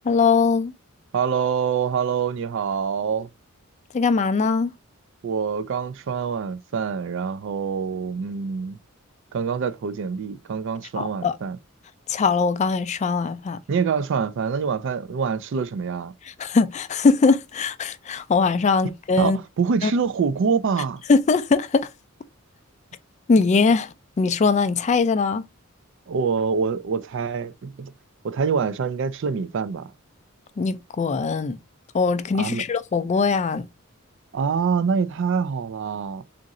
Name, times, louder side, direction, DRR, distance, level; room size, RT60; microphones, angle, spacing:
voice 1, 0.0-0.7 3.9-4.7 11.0-11.4 12.1-13.6 16.4-19.4 19.8-19.9 21.1-21.9 23.3-23.9 24.2-25.5 30.6-31.6 31.9-33.7, left 4 dB, 35° left, 0.3 m, -21 dB
voice 2, 1.1-3.3 5.2-8.8 9.3-11.6 13.7-16.1 19.2-21.0 26.1-27.9 28.2-29.9 32.4-32.6 34.3-36.2, right 6 dB, 60° right, 0.4 m, -25 dB
3.7 x 2.5 x 4.0 m
head